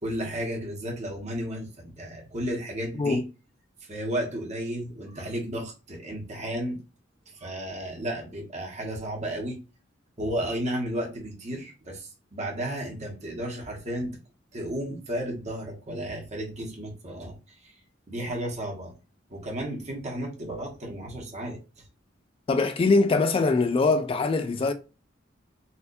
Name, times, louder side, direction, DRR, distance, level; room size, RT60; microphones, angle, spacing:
voice 1, 0.0-3.2 3.8-6.8 7.3-9.6 10.2-14.2 14.5-17.7 18.1-18.9 19.3-21.8, right 1 dB, 35° right, 1.3 m, -33 dB
voice 2, 22.5-24.7, left 3 dB, 30° left, 0.3 m, -22 dB
4.2 x 2.6 x 2.5 m
head